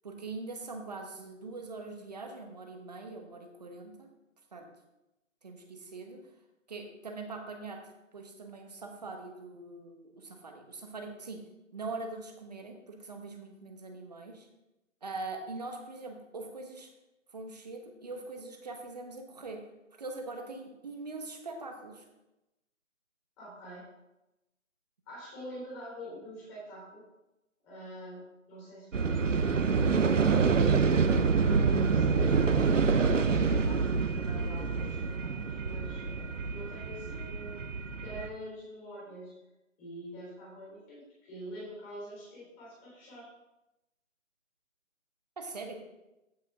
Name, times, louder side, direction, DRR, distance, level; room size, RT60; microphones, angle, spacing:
voice 1, 0.0-4.1 4.5-4.7 5.4-6.2 6.7-7.8 8.1-11.4 11.7-14.5 15.0-16.9 17.3-19.6 20.0-22.1 45.4-45.7, right 3 dB, 30° right, 3 dB, 1.2 m, -42 dB
voice 2, 23.4-23.9 25.1-27.0 27.6-30.0 31.4-37.6 38.0-39.3 39.8-43.3, equal, 10° left, -7 dB, 3.4 m, -45 dB
sound 1, 28.9-38.3, right 5 dB, 65° right, 0.9 m, -27 dB
15.0 x 5.6 x 3.6 m, 0.96 s
figure-of-eight pair, 165°, 40 cm